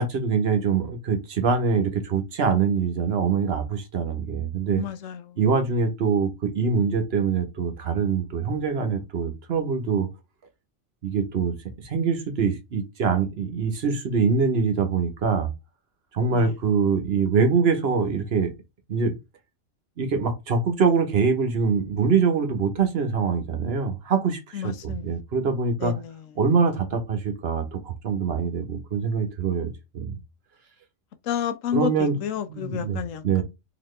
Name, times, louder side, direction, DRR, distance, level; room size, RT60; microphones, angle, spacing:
voice 1, 0.0-4.8 5.4-10.1 11.0-11.5 11.8-15.5 16.1-18.5 18.9-19.1 20.0-25.9 26.4-30.2 31.7-32.2 32.5-33.4, right 5 dB, 55° right, 1.0 m, -24 dB
voice 2, 4.8-5.2 16.3-16.5 24.5-25.2 25.8-26.2 31.2-33.4, left 9 dB, 75° left, 1.0 m, -30 dB
4.0 x 2.8 x 3.2 m
omnidirectional pair, 1.4 m